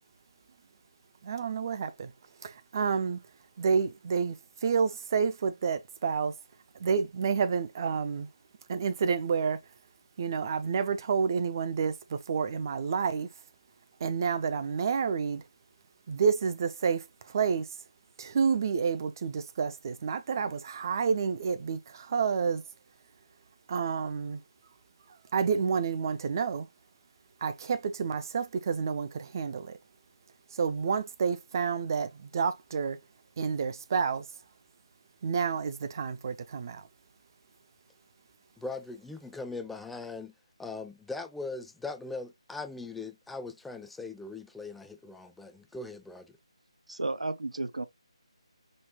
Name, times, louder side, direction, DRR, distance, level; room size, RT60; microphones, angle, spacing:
voice 1, 1.2-2.1 2.4-3.2 3.6-6.3 6.8-8.3 8.7-9.6 10.2-13.3 14.0-15.4 16.1-17.7 18.2-22.6 23.7-24.4 25.3-26.7 27.4-29.8 30.5-33.0 33.4-34.3 35.2-36.8, right 6 dB, 35° right, 0.7 m, -29 dB
voice 2, 38.6-40.3 40.6-46.4, left 3 dB, 5° left, 0.4 m, -40 dB
voice 3, 46.9-47.8, right 2 dB, 75° right, 0.8 m, -33 dB
5.4 x 3.0 x 2.9 m
figure-of-eight pair, 155°, 3 cm